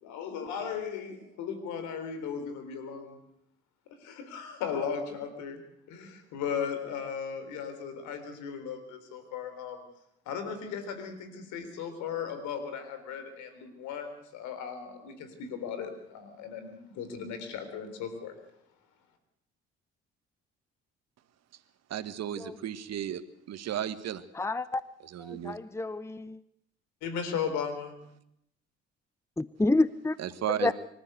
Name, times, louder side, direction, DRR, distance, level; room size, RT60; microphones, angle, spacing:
voice 1, 0.0-3.2 4.0-5.6 5.9-9.8 10.3-18.4 27.0-28.0, left 7 dB, 75° left, 9 dB, 3.9 m, -36 dB
voice 2, 21.9-23.2 23.5-24.2 25.1-25.6 30.2-30.7, right 10 dB, 60° right, 12 dB, 1.7 m, -34 dB
voice 3, 24.3-24.8 25.2-26.4 29.4-30.2 30.5-30.7, left 2 dB, 10° left, 16 dB, 0.8 m, -29 dB
25.0 x 13.5 x 8.1 m, 0.76 s
hypercardioid pair, 55°, 30 cm